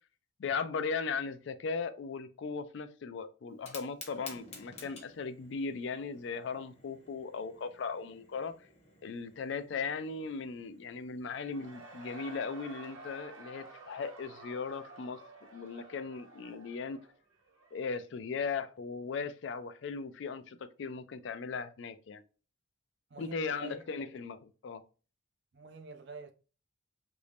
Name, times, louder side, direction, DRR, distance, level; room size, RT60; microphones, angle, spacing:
voice 1, 0.4-8.6 9.0-15.2 15.5-17.0 17.7-22.2 23.2-24.8, left 5 dB, 65° left, 0.4 m, -38 dB
Fire, 3.5-12.4, left 3 dB, 30° left, 0.8 m, -54 dB
Cheering / Crowd, 11.2-17.9, right 3 dB, 75° right, 0.8 m, -51 dB
voice 2, 23.1-23.8 25.5-26.3, right 4 dB, 55° right, 0.5 m, -47 dB
3.0 x 2.6 x 3.3 m
head